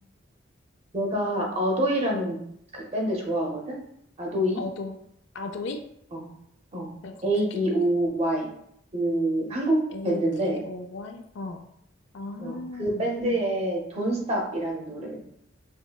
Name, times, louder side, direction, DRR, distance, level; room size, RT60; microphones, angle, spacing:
voice 1, 0.9-2.4 2.7-3.8 4.2-4.6 6.1-6.3 6.7-6.9 7.2-8.5 8.9-9.8 10.0-10.6 12.4-15.2, right 1 dB, 30° right, 0 dB, 0.7 m, -26 dB
voice 2, 4.6-5.0 5.3-5.8 7.0-7.3 9.9-11.6 12.1-13.1, left 3 dB, 60° left, 5 dB, 0.3 m, -36 dB
5.2 x 2.1 x 2.2 m, 0.73 s
head